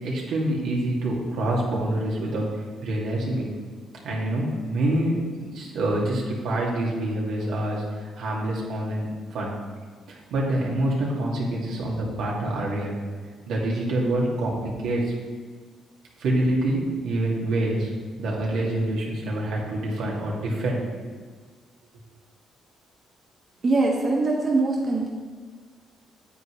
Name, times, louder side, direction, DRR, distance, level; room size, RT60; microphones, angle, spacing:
voice 1, 0.0-3.4 4.0-9.5 10.1-13.0 13.5-15.1 16.2-17.9 18.2-20.8, right 1 dB, 85° right, -3 dB, 2.1 m, -26 dB
voice 2, 23.6-25.1, right 3 dB, 40° right, -2 dB, 1.3 m, -22 dB
9.3 x 7.8 x 3.2 m, 1.6 s
cardioid pair, 90°, 0 cm